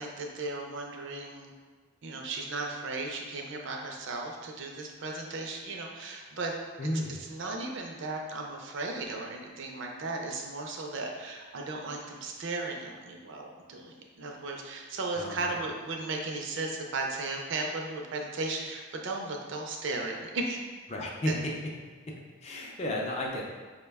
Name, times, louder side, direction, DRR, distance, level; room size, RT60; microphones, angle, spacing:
voice 1, 0.0-1.5 2.0-6.6 7.3-20.6 21.3-21.4, right 3 dB, 55° right, 1 dB, 0.4 m, -36 dB
voice 2, 6.8-7.2 15.2-15.6 20.9-21.5 22.1-22.2 22.4-23.4, left 1 dB, 30° left, -1 dB, 0.4 m, -33 dB
4.4 x 2.1 x 3.4 m, 1.4 s
head